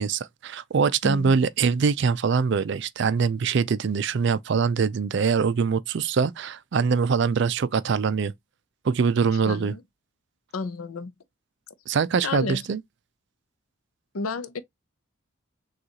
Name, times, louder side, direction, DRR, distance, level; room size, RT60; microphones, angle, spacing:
voice 1, 0.0-8.3 8.8-9.7 11.9-12.8, right 5 dB, 55° right, 0.4 m, -23 dB
voice 2, 1.0-1.3 9.3-9.8 10.5-11.1 12.2-12.6 14.1-14.6, left 4 dB, 85° left, 0.6 m, -31 dB
6.4 x 2.4 x 2.9 m
head